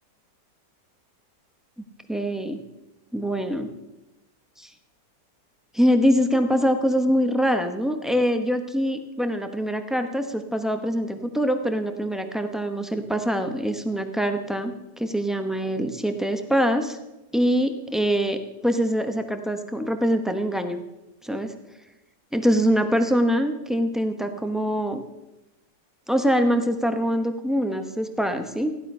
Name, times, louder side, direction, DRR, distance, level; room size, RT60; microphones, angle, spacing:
voice 1, 2.1-2.6 3.1-3.7 4.6-4.7 5.7-17.0 17.3-20.8 21.2-21.5 22.3-25.0 26.1-28.7, equal, ahead, 7 dB, 0.6 m, -24 dB
15.5 x 11.0 x 5.5 m, 0.97 s
omnidirectional pair, 1.9 m